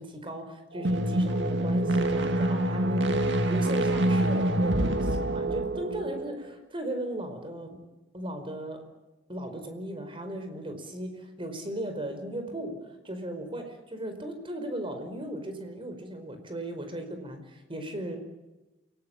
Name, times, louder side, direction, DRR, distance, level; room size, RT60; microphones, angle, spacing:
voice 1, 0.0-3.2 3.5-7.8 8.1-8.8 9.3-11.1 11.4-12.8 13.0-18.2, right 1 dB, 30° right, 7 dB, 4.8 m, -36 dB
sound 1, 0.8-6.4, right 1 dB, 75° right, 2.2 m, -26 dB
28.5 x 18.5 x 8.9 m, 1.1 s
head